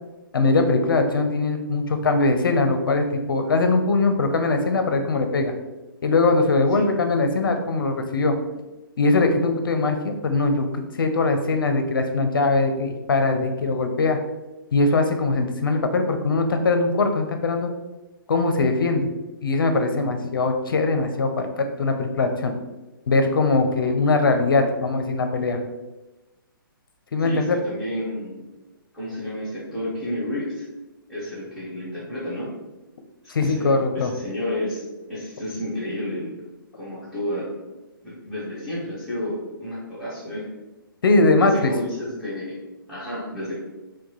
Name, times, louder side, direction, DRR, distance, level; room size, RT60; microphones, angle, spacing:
voice 1, 0.3-5.5 6.0-8.3 9.0-10.7 11.0-14.2 14.7-17.7 18.3-19.1 19.4-22.5 23.1-25.6 27.1-27.6 33.3-34.1 41.0-41.7, left 3 dB, 70° left, 6 dB, 0.6 m, -21 dB
voice 2, 27.2-28.4 28.9-30.7 31.1-32.5 33.2-36.4 36.7-37.5 38.0-40.5 41.5-42.5 42.9-43.5, left 1 dB, ahead, -12 dB, 1.5 m, -31 dB
4.4 x 2.2 x 3.0 m, 1.1 s
figure-of-eight pair, 130°, 12 cm